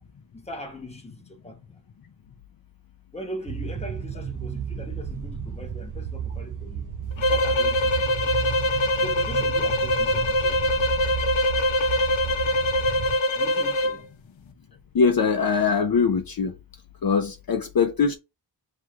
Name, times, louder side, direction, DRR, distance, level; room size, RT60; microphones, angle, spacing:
voice 1, 0.3-1.6 3.1-6.9 7.2-8.4 9.0-10.8 13.3-14.1, left 1 dB, 15° left, 1.1 m, -40 dB
sound 1, 3.5-13.2, right 7 dB, 45° right, 0.5 m, -33 dB
sound 2, 7.2-14.0, left 1 dB, 85° left, 0.8 m, -23 dB
voice 2, 14.9-16.5 17.0-18.1, left 5 dB, 50° left, 0.6 m, -22 dB
5.8 x 3.0 x 2.4 m
wide cardioid pair, 85°, 45 cm